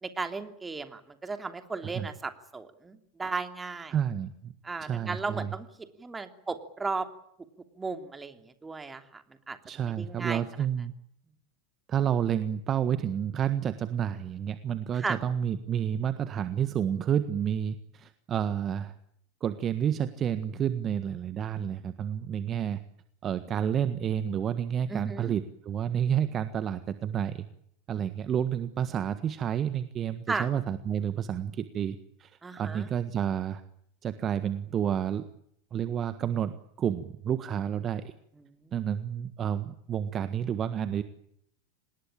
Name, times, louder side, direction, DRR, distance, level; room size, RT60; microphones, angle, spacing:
voice 1, 0.0-3.9 4.6-5.7 6.0-7.1 7.8-8.3 8.6-9.6 10.0-10.4 15.0-15.2 24.9-25.3 30.3-30.5 32.4-32.9 38.6-38.7, right 4 dB, 15° right, 8 dB, 3.1 m, -35 dB
voice 2, 3.9-4.5 4.8-5.5 9.6-10.9 11.9-18.9 19.4-22.8 23.2-27.4 27.9-33.6 34.0-35.2 35.7-38.1 38.7-41.0, right 9 dB, 30° right, 12 dB, 1.6 m, -30 dB
26.5 x 20.0 x 8.9 m, 0.70 s
figure-of-eight pair, 85°, 0 cm